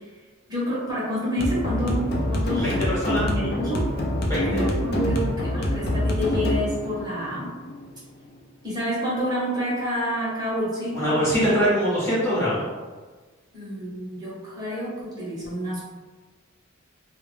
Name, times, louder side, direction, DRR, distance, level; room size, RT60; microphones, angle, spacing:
voice 1, 0.5-2.8 3.2-3.9 4.3-7.5 8.6-11.3 13.5-15.8, equal, 20° right, -8 dB, 0.8 m, -28 dB
sound 1, 1.4-8.4, left 1 dB, 50° left, 0.4 m, -26 dB
voice 2, 2.6-3.2 4.3-4.6 10.9-12.6, equal, 10° left, -9 dB, 0.7 m, -23 dB
2.1 x 2.0 x 3.2 m, 1.4 s
head